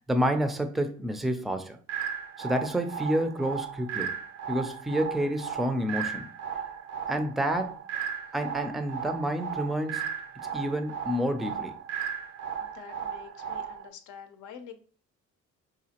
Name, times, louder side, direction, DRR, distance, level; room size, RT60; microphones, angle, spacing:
voice 1, 0.1-1.8 2.4-4.1 4.5-6.3 7.1-7.8 8.3-10.0 10.5-11.7, equal, ahead, 8 dB, 0.4 m, -29 dB
sound 1, 1.9-13.9, right 8 dB, 80° right, 0.5 m, -36 dB
voice 2, 12.6-14.8, left 8 dB, 75° left, 8 dB, 0.6 m, -47 dB
4.8 x 2.4 x 2.8 m, 0.41 s
cardioid pair, 90°, 30 cm